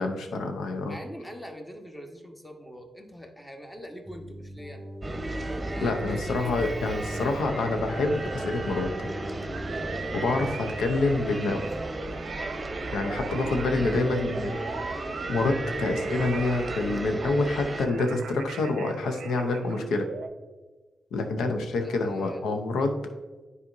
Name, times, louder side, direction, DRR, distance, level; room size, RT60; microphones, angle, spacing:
voice 1, 0.0-1.0 5.8-8.9 10.1-11.6 12.9-14.6 15.3-20.1 21.1-23.0, left 3 dB, 80° left, 5 dB, 0.7 m, -27 dB
voice 2, 0.9-4.9 5.7-7.5 21.8-22.6, equal, 15° left, 3 dB, 1.4 m, -44 dB
Keyboard (musical), 4.1-11.3, right 1 dB, 10° right, 1.5 m, -41 dB
sound 1, 5.0-17.9, right 2 dB, 30° right, 0.8 m, -34 dB
sound 2, 9.5-20.3, right 6 dB, 80° right, 0.5 m, -41 dB
10.0 x 4.1 x 2.7 m, 1.3 s
supercardioid pair, 40°, 0 cm